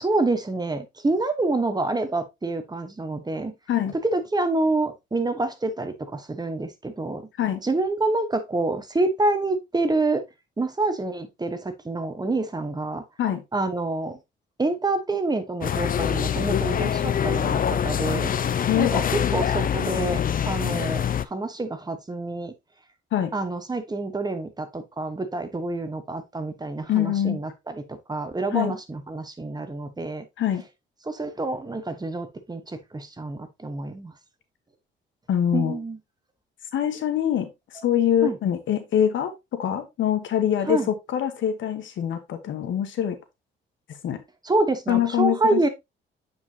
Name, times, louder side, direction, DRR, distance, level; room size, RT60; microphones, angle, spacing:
voice 1, 0.0-3.5 4.0-7.3 7.6-10.2 10.6-13.0 13.5-14.2 14.6-18.3 18.7-22.5 23.3-30.2 31.1-34.1 35.5-36.0 37.8-37.9 38.2-38.4 40.7-40.9 44.4-45.7, right 2 dB, 20° right, 1.3 m, -27 dB
sound 1, 15.6-21.3, left 8 dB, 45° left, 0.7 m, -24 dB
voice 2, 18.7-19.0 23.1-23.3 26.9-27.4 28.5-28.7 30.4-30.6 35.3-35.7 36.7-43.2 44.0-44.2 44.9-45.6, left 10 dB, 75° left, 1.4 m, -24 dB
8.5 x 5.1 x 2.9 m
cardioid pair, 90°, 20 cm